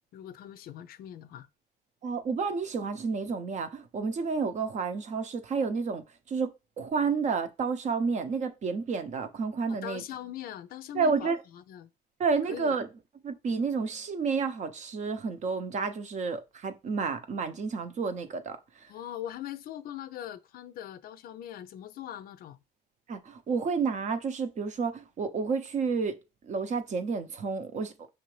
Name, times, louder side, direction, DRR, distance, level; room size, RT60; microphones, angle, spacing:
voice 1, 0.1-1.5 9.7-11.9 12.5-12.7 18.9-22.6, left 11 dB, 60° left, 0.4 m, -41 dB
voice 2, 2.0-10.0 10.9-11.4 12.2-12.9 13.2-18.9 23.1-26.2 26.4-27.9, right 5 dB, 45° right, 0.7 m, -30 dB
5.9 x 2.7 x 3.2 m
cardioid pair, 110°, 17 cm